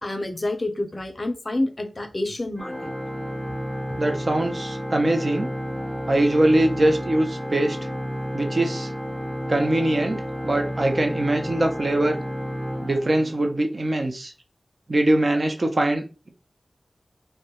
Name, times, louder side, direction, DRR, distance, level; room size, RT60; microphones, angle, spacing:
voice 1, 0.0-2.9, left 1 dB, 45° left, 7 dB, 0.5 m, -28 dB
Organ, 2.6-13.7, equal, 10° right, 0.6 m, -31 dB
voice 2, 4.0-5.5 6.1-7.8 8.3-8.9 9.5-12.2 12.8-14.3 14.9-16.3, right 1 dB, 55° right, 4 dB, 0.5 m, -22 dB
2.3 x 2.0 x 2.8 m, 0.31 s
wide cardioid pair, 50°, 0 cm